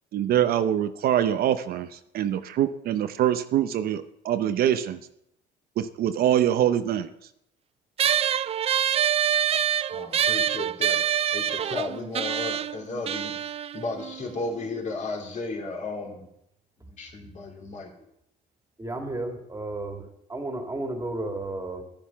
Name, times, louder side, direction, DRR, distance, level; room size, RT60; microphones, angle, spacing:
voice 1, 0.1-5.0 5.8-7.1, right 10 dB, 65° right, 10 dB, 0.7 m, -24 dB
sound 1, 8.0-14.8, right 9 dB, 35° right, 0.4 m, -26 dB
voice 2, 9.9-11.0 11.3-13.3 13.7-16.3 16.8-17.9, left 3 dB, 45° left, 0 dB, 3.2 m, -34 dB
voice 3, 18.8-20.0 20.3-21.8, right 2 dB, 20° right, 4 dB, 2.3 m, -32 dB
10.5 x 10.5 x 5.8 m, 0.78 s
cardioid pair, 110°, 17 cm